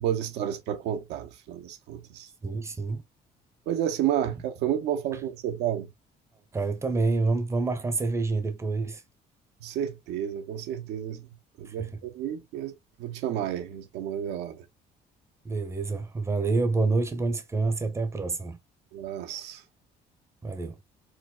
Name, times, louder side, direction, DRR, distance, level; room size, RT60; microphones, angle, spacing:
voice 1, 0.0-2.3 3.7-5.9 9.6-11.2 11.6-12.7 13.0-14.6 18.9-19.6, right 10 dB, 90° right, 0.6 m, -31 dB
voice 2, 2.4-3.0 6.5-9.0 11.7-12.0 15.4-18.6 20.4-20.8, right 3 dB, 15° right, 0.6 m, -27 dB
4.5 x 2.0 x 2.2 m
cardioid pair, 110°, 17 cm